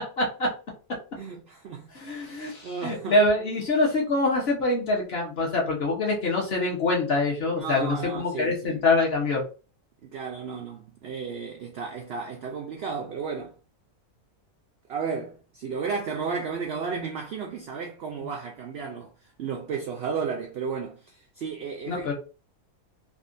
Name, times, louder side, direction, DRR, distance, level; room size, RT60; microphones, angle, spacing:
voice 1, 0.2-0.5 1.9-9.4 21.9-22.1, left 2 dB, 50° left, 1.0 m, -25 dB
voice 2, 1.2-1.9 2.3-3.2 7.5-8.9 10.0-13.5 14.9-22.1, right 5 dB, 75° right, 0.5 m, -33 dB
3.6 x 2.3 x 2.5 m
omnidirectional pair, 1.6 m